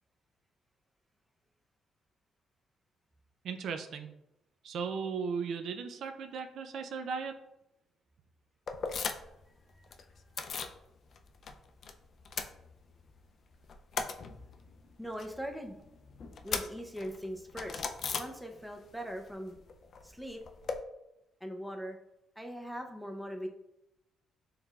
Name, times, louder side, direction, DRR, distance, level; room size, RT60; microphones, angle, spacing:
voice 1, 3.4-4.1 4.6-7.3, right 5 dB, 70° right, 7 dB, 0.3 m, -36 dB
sound 1, 8.7-9.4 9.7-10.8 11.1-11.9 12.2-13.2 13.5-18.9 19.1-20.8, left 5 dB, 55° left, 0.3 m, -39 dB
voice 2, 15.0-15.8 16.4-17.9 18.1-19.6 20.0-20.4 21.4-22.0 22.4-23.5, equal, ahead, 3 dB, 0.5 m, -40 dB
4.6 x 3.2 x 2.3 m, 0.87 s
cardioid pair, 90°, 0 cm